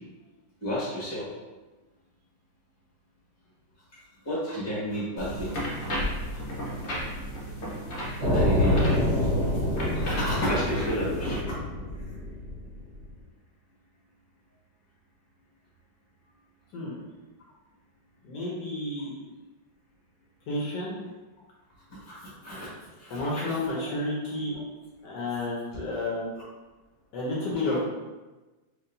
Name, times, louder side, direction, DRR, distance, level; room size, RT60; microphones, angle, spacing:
voice 1, 0.6-1.3 4.2-5.8 6.3-6.4 8.0-8.9 9.2-9.3 9.9-11.5 21.9-22.7 23.0-23.4, equal, 10° left, -8 dB, 1.1 m, -32 dB
sound 1, 5.2-11.4, equal, 45° left, 1.0 m, -34 dB
sound 2, 8.2-13.0, left 1 dB, 35° right, 0.7 m, -26 dB
voice 2, 18.2-19.1 20.5-20.9 23.1-24.6 25.0-26.3 27.1-27.8, left 2 dB, 70° left, -5 dB, 1.3 m, -31 dB
4.6 x 2.9 x 2.6 m, 1.2 s
omnidirectional pair, 2.1 m